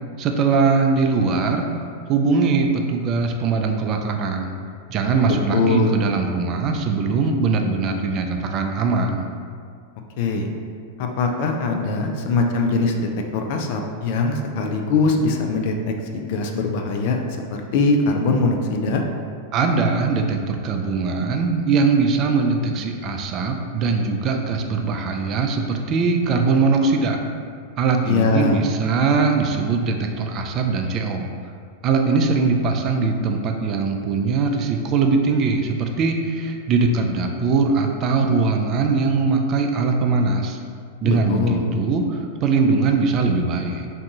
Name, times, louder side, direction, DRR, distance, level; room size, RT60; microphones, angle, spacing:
voice 1, 0.2-4.5 4.9-9.3 19.5-27.2 27.8-31.3 31.8-40.6 41.0-43.9, right 4 dB, 40° right, 3 dB, 0.3 m, -21 dB
voice 2, 5.3-6.0 10.2-10.5 11.0-19.0 28.1-28.6 41.0-41.8, left 3 dB, 55° left, 3 dB, 0.3 m, -22 dB
2.6 x 2.3 x 3.8 m, 2.1 s
figure-of-eight pair, 95°, 0 cm